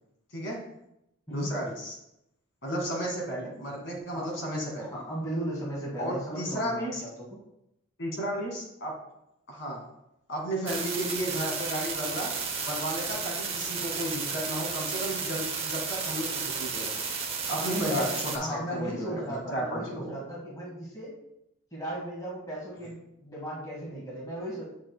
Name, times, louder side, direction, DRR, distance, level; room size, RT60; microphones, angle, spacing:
voice 1, 1.3-2.0 2.6-4.9 6.0-7.0 8.0-8.9 9.5-9.8 10.3-12.3 12.6-17.0 17.5-20.1, right 1 dB, 65° left, -1 dB, 2.0 m, -33 dB
voice 2, 4.8-7.4 17.6-21.1 21.7-24.6, equal, 15° left, -4 dB, 1.5 m, -36 dB
sound 1, 10.7-18.4, right 5 dB, 30° right, 0.8 m, -33 dB
8.4 x 6.2 x 2.3 m, 0.84 s
head